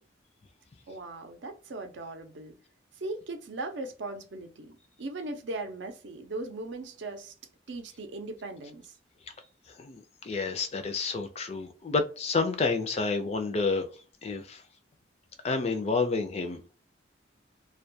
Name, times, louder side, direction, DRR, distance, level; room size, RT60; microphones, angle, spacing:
voice 1, 0.9-2.6 2.9-7.3 7.7-9.0, right 2 dB, 75° right, 0.5 m, -38 dB
voice 2, 9.8-13.9 14.2-14.6 15.4-16.6, left 4 dB, 35° left, 0.4 m, -29 dB
2.2 x 2.2 x 2.6 m
head